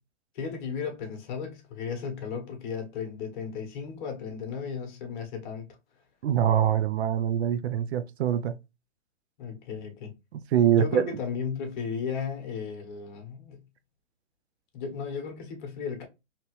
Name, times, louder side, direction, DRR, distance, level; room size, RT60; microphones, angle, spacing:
voice 1, 0.3-5.8 9.4-10.1 10.7-13.6 14.7-16.0, left 6 dB, 40° left, 1.2 m, -35 dB
voice 2, 6.2-8.6 10.3-11.1, right 10 dB, 65° right, 0.5 m, -24 dB
2.9 x 2.7 x 3.0 m
hypercardioid pair, 140°, 36 cm